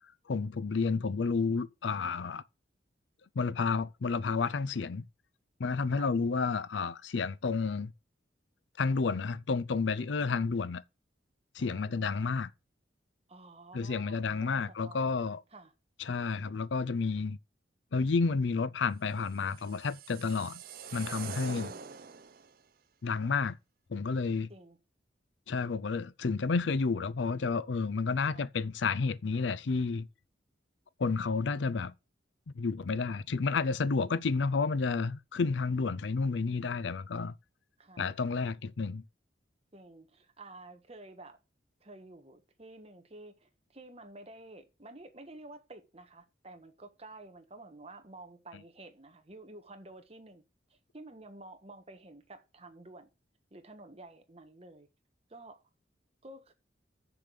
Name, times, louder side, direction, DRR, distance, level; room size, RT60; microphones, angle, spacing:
voice 1, 0.3-2.4 3.4-5.1 5.6-7.9 8.8-10.8 11.5-12.5 13.7-15.4 16.0-17.4 17.9-20.6 20.9-21.7 23.0-23.6 23.9-24.5 25.5-30.1 31.0-31.9 32.6-37.3 38.0-39.0, left 4 dB, 75° left, 0.5 m, -31 dB
voice 2, 10.2-10.5 11.6-12.1 13.3-15.1 15.5-15.7 21.4-22.0 24.5-24.8 28.2-28.4 33.1-33.2 34.0-34.3 37.8-38.0 39.7-41.4 41.8-50.4 50.7-53.1 53.5-54.9 55.3-55.6 56.2-56.5, right 2 dB, 35° right, 1.4 m, -51 dB
sound 1, 19.3-22.5, right 6 dB, 50° right, 0.6 m, -44 dB
6.9 x 6.6 x 6.7 m
head